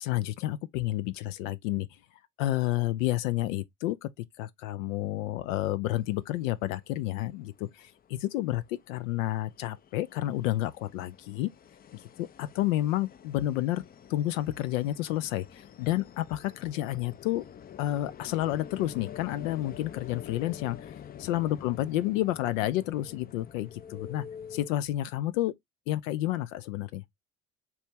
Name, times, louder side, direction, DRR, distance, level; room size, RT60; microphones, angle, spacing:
voice 1, 0.0-1.9 2.4-4.1 4.4-11.5 11.9-13.8 14.1-17.4 17.8-24.2 24.5-25.5 25.9-27.0, left 15 dB, 75° left, 0.5 m, -30 dB
sound 1, 6.0-6.1 6.4-24.7, left 9 dB, 25° left, 0.4 m, -47 dB
4.2 x 3.0 x 3.5 m
hypercardioid pair, 55°, 39 cm